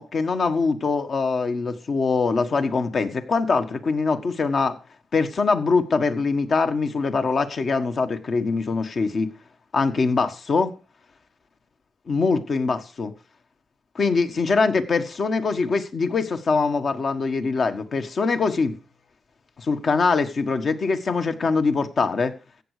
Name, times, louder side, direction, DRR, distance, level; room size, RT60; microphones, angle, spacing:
voice 1, 0.0-4.8 5.1-9.3 9.7-10.7 12.1-13.1 13.9-18.7 19.6-22.3, left 4 dB, 55° left, 1.5 m, -23 dB
14.5 x 8.4 x 5.0 m
supercardioid pair, 50°, 0 cm